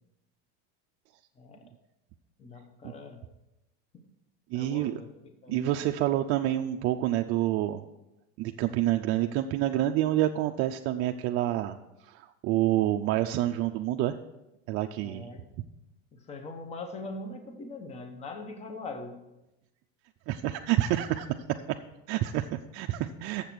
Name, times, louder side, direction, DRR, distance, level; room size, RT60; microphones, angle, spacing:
voice 1, 2.4-3.2 3.9-4.0 4.5-5.1 5.4-5.7 15.0-15.4 16.1-19.2, left 3 dB, 20° left, 6 dB, 0.8 m, -41 dB
voice 2, 4.5-5.0 5.5-7.8 8.4-14.2 14.7-15.3 20.3-21.8 22.1-23.5, right 13 dB, 45° right, 5 dB, 0.4 m, -28 dB
7.2 x 6.7 x 6.0 m, 0.95 s
supercardioid pair, 130°, 33 cm